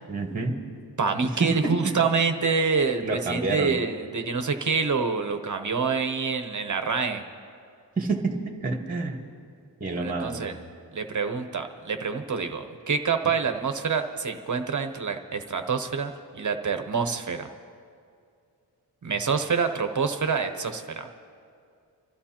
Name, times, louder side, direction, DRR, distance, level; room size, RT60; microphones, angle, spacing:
voice 1, 0.1-0.6 1.2-2.0 3.0-3.8 8.0-9.2 9.8-10.5, right 3 dB, 20° right, 2 dB, 1.3 m, -28 dB
voice 2, 1.0-7.2 10.0-10.6 10.9-17.5 19.0-21.1, right 5 dB, 45° right, 7 dB, 0.8 m, -27 dB
28.5 x 13.5 x 2.9 m, 2.3 s
wide cardioid pair, 145°, 43 cm